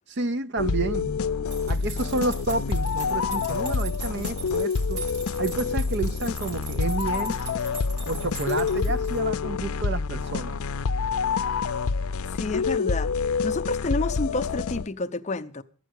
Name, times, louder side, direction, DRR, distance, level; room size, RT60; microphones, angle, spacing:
voice 1, 0.1-1.1 1.7-5.0 5.4-7.4 8.1-10.6, right 3 dB, 50° right, 0.6 m, -30 dB
sound 1, 0.6-14.9, left 5 dB, 75° left, 0.5 m, -27 dB
sound 2, 1.5-9.2, right 3 dB, 90° right, 3.2 m, -41 dB
voice 2, 12.3-15.6, left 2 dB, 30° left, 0.5 m, -30 dB
13.0 x 9.0 x 6.4 m
head